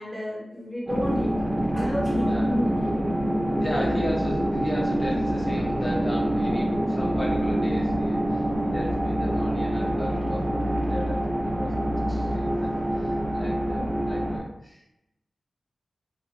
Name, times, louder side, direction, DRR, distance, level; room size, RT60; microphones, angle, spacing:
voice 1, 0.0-1.3 1.7-3.0 3.7-3.8 13.7-13.9, equal, 5° right, -6 dB, 1.3 m, -32 dB
sound 1, 0.9-14.4, right 1 dB, 35° right, 0.7 m, -25 dB
voice 2, 2.2-2.6 3.6-12.7 13.3-14.8, left 1 dB, 40° left, -6 dB, 0.7 m, -36 dB
2.7 x 2.5 x 2.5 m, 0.87 s
cardioid pair, 50°, 0 cm